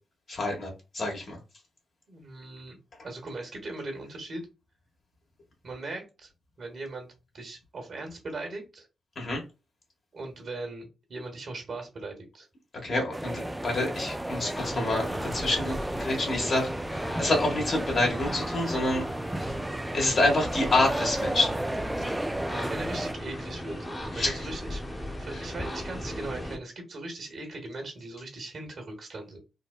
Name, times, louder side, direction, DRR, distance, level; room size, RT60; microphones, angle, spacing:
voice 1, 0.3-0.7 0.9-1.4 9.1-9.4 12.8-19.0 19.9-21.6 24.1-24.4, left 2 dB, 55° left, 1.5 m, -27 dB
voice 2, 2.1-2.8 3.0-4.4 5.6-6.3 6.6-7.1 7.3-8.9 10.1-12.5 22.5-23.8 24.1-24.8 25.2-29.4, right 2 dB, 60° right, 1.3 m, -39 dB
sound 1, 13.1-23.1, right 1 dB, 15° right, 0.4 m, -33 dB
sound 2, 14.5-26.6, equal, 15° left, 1.0 m, -37 dB
3.8 x 2.1 x 2.3 m
hypercardioid pair, 40°, 0 cm